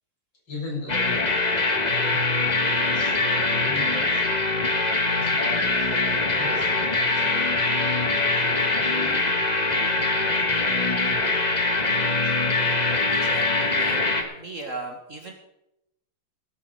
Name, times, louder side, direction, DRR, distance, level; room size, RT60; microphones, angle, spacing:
voice 1, 0.5-4.4 5.1-8.6 12.2-12.4, left 1 dB, 60° left, -5 dB, 8.1 m, -41 dB
sound 1, 0.9-14.2, left 3 dB, 25° left, 1.3 m, -23 dB
voice 2, 13.1-15.3, right 2 dB, 40° right, 2 dB, 1.8 m, -38 dB
18.5 x 10.5 x 4.9 m, 0.84 s
omnidirectional pair, 2.3 m